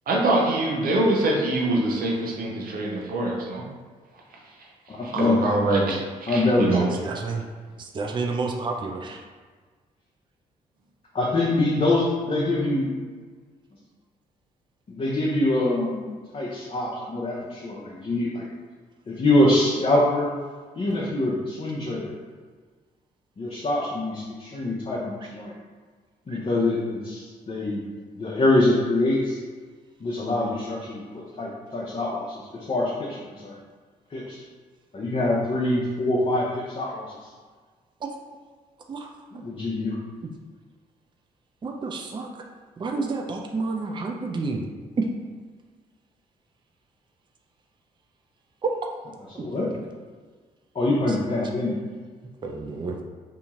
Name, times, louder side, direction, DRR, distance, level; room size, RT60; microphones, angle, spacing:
voice 1, 0.1-3.6 4.6-4.7 5.0-6.8, right 2 dB, 60° right, -2 dB, 0.8 m, -24 dB
voice 2, 4.9-5.4 6.3-7.1 11.1-12.9 14.9-16.1 16.3-18.5 19.1-20.3 20.8-22.1 23.4-25.5 26.3-27.8 28.2-29.4 30.0-33.6 34.1-34.4 34.9-37.3 39.4-40.0 49.3-49.7 50.7-51.8, left 2 dB, 35° left, -5 dB, 0.8 m, -24 dB
voice 3, 7.0-7.5 7.8-9.2 26.3-26.4 38.0-38.2 38.9-39.4 40.2-40.3 41.6-42.3 42.8-44.7 45.0-45.1 48.6-48.9 49.4-49.5 51.1-51.2 52.4-53.0, right 3 dB, 25° right, 2 dB, 0.4 m, -30 dB
2.8 x 2.8 x 3.6 m, 1.5 s
hypercardioid pair, 50°, 17 cm